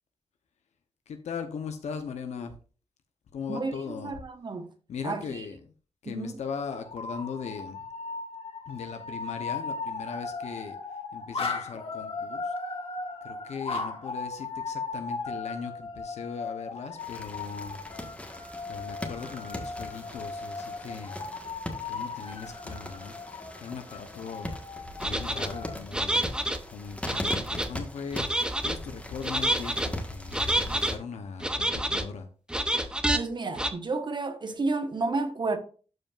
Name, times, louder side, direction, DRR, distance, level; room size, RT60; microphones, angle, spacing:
voice 1, 1.1-2.5 3.3-4.1 4.9-5.6 6.0-7.9 8.7-10.8 11.1-12.5 13.2-17.8 18.7-21.1 21.8-24.5 25.0-26.3 26.7-28.3 28.6-30.4 30.6-32.3, left 6 dB, 90° left, 0.9 m, -39 dB
voice 2, 3.5-4.7 5.0-5.5 6.0-6.4 33.1-35.6, right 3 dB, 45° right, 1.2 m, -31 dB
sound 1, 6.9-25.8, left 4 dB, 60° left, 1.7 m, -37 dB
sound 2, 17.0-31.0, left 1 dB, 10° left, 1.5 m, -40 dB
sound 3, 25.0-25.5 25.9-26.6 27.0-27.7 28.1-28.8 29.2-29.9 30.3-30.9 31.4-32.1 32.5-33.2 33.6-33.7, right 1 dB, 10° right, 0.8 m, -28 dB
12.0 x 5.2 x 2.5 m
wide cardioid pair, 90°, 11 cm